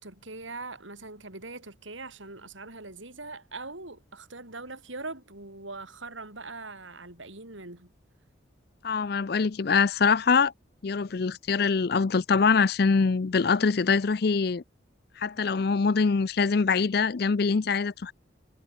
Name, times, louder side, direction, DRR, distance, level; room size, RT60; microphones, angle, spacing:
voice 1, 0.0-7.9, right 3 dB, 80° right, 6.1 m, -41 dB
voice 2, 8.8-10.5 10.8-14.6 15.2-18.1, left 5 dB, 50° left, 0.5 m, -24 dB
head